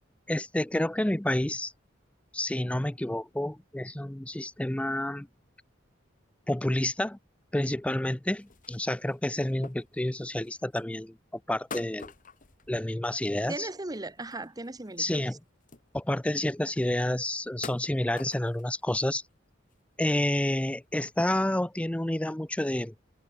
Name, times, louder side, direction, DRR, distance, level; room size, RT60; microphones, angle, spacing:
voice 1, 0.3-1.7 2.3-5.3 6.5-7.2 7.5-11.1 11.5-12.1 12.7-13.7 15.0-15.4 15.9-19.2 20.0-22.9, left 1 dB, 5° left, 0.5 m, -29 dB
sound 1, 8.3-10.9 11.7-13.4 13.7-15.0 15.3-15.4 15.6-16.3 16.8-16.9 17.4-18.8 19.3-19.4 19.7-20.2 20.6-20.7 21.0-21.2 22.0-22.1, left 4 dB, 45° left, 1.8 m, -47 dB
voice 2, 13.2-15.3, right 2 dB, 20° right, 1.1 m, -38 dB
head